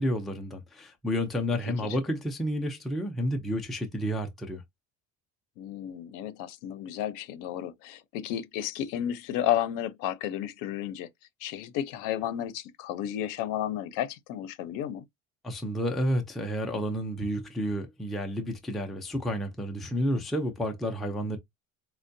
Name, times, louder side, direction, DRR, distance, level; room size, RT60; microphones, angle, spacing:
voice 1, 0.0-4.6 15.4-21.4, equal, ahead, 0.4 m, -30 dB
voice 2, 5.6-11.1 11.4-15.0, left 11 dB, 70° left, 0.7 m, -32 dB
4.4 x 2.2 x 2.6 m
cardioid pair, 175°, 33 cm